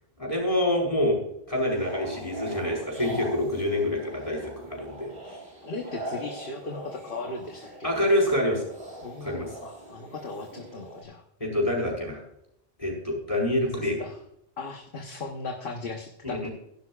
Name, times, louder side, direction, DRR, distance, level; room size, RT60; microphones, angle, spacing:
voice 1, 0.2-1.2 1.5-5.4 7.8-8.7 9.2-9.6 11.4-12.2 12.8-14.0 16.2-16.5, left 1 dB, 35° left, -1 dB, 4.9 m, -26 dB
sound 1, 1.5-11.0, right 1 dB, 60° right, 3.1 m, -41 dB
voice 2, 5.6-7.9 9.0-11.2 13.7-14.2 14.6-16.5, left 3 dB, 60° left, 3 dB, 1.3 m, -37 dB
16.0 x 11.5 x 2.4 m, 0.78 s
omnidirectional pair, 1.1 m